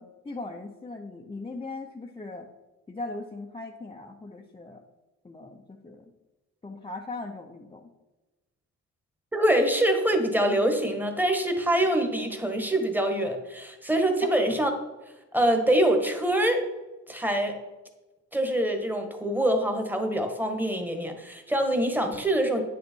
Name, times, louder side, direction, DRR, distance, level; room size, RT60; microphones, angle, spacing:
voice 1, 0.0-2.5 2.9-4.8 5.2-6.1 6.6-7.9 14.2-14.4, left 2 dB, 15° left, 0 dB, 0.8 m, -39 dB
voice 2, 9.3-14.7 15.3-16.6 17.1-17.6 18.3-22.6, right 1 dB, 5° right, 5 dB, 1.6 m, -25 dB
9.5 x 6.6 x 4.6 m, 1.1 s
cardioid pair, 90°, 30 cm